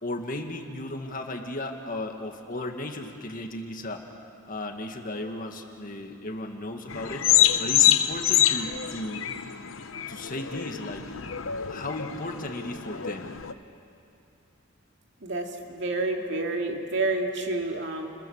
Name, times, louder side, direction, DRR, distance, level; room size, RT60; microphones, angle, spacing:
voice 1, 0.0-4.1 4.5-7.2 7.6-9.3 10.1-11.1 11.7-13.3, left 1 dB, 40° left, 4 dB, 1.9 m, -35 dB
sound 1, 6.9-13.5, left 10 dB, 80° left, 0.9 m, -26 dB
voice 2, 15.2-18.1, right 2 dB, 60° right, 2 dB, 2.5 m, -29 dB
30.0 x 22.0 x 7.2 m, 2.6 s
head